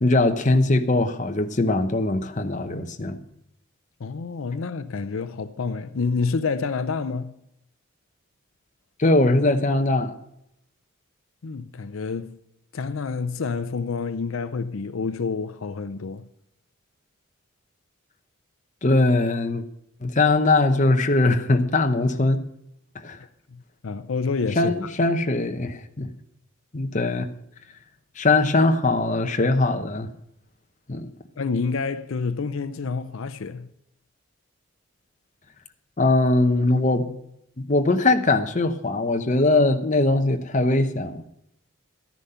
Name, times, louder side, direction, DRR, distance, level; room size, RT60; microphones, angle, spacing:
voice 1, 0.0-3.2 9.0-10.1 18.8-19.6 20.0-22.4 22.9-23.2 24.6-26.1 26.7-27.3 28.2-30.1 30.9-31.1 36.0-37.1 37.7-41.2, left 2 dB, 35° left, 0.8 m, -21 dB
voice 2, 4.0-7.4 11.4-12.4 12.7-16.3 23.5-24.7 31.4-33.7, left 4 dB, 75° left, 0.5 m, -28 dB
13.0 x 10.5 x 5.6 m
head